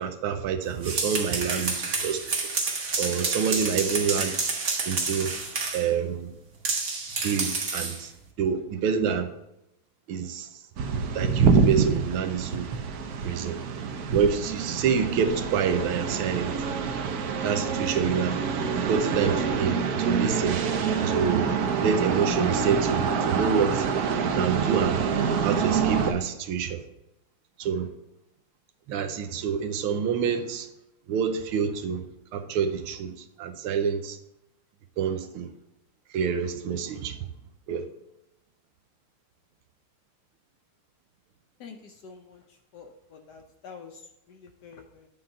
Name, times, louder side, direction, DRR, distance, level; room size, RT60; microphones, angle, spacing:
voice 1, 0.0-2.5 3.0-4.3 4.8-5.3 5.7-6.3 7.2-8.1 8.4-9.3 10.1-10.5 11.1-12.7 13.2-13.6 14.1-16.5 17.4-18.4 18.9-20.6 21.1-21.5 21.8-23.9 24.2-25.0 25.4-26.8 27.6-27.9 28.9-30.7 31.1-32.0 32.3-34.2 35.0-35.5 36.1-37.2 37.7-37.8, right 7 dB, 85° right, 1.6 m, -27 dB
sound 1, 0.7-5.9 6.6-8.0, right 3 dB, 40° right, 1.3 m, -29 dB
sound 2, 10.8-26.1, right 6 dB, 65° right, 1.0 m, -26 dB
voice 2, 41.6-42.4 42.7-45.1, left 5 dB, 70° left, 1.0 m, -47 dB
8.8 x 3.9 x 5.4 m
omnidirectional pair, 2.3 m